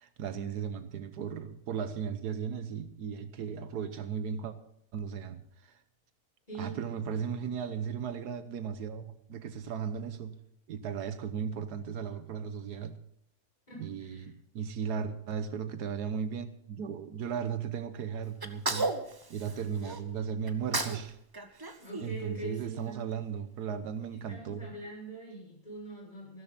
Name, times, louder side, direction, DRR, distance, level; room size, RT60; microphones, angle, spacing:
voice 1, 0.0-4.6 4.9-5.8 6.6-10.4 10.7-13.0 13.8-18.9 19.3-21.2 21.5-21.7 22.0-24.7, right 7 dB, 85° right, 1.5 m, -36 dB
voice 2, 6.5-6.8 7.1-7.2 9.3-9.4 13.7-14.3 21.8-23.1 24.1-26.4, right 2 dB, 25° left, 6.6 m, -43 dB
Sneeze, 18.4-20.0 20.5-21.1 21.3-22.8, right 3 dB, 20° right, 0.6 m, -34 dB
15.5 x 13.0 x 4.2 m
omnidirectional pair, 1.7 m